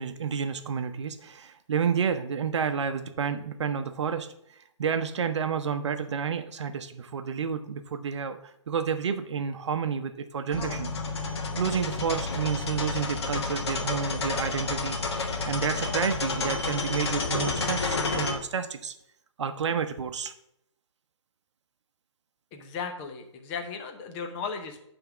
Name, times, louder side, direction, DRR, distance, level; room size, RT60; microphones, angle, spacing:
voice 1, 0.0-4.3 4.8-8.4 8.7-10.9 11.6-15.0 15.5-18.9 19.4-20.3, right 6 dB, 65° right, 8 dB, 0.7 m, -30 dB
sound 1, 10.5-18.3, left 3 dB, 55° left, 1.4 m, -30 dB
voice 2, 22.5-24.8, left 5 dB, 20° left, 4 dB, 0.7 m, -36 dB
9.2 x 3.5 x 6.0 m, 0.75 s
hypercardioid pair, 160°, 16 cm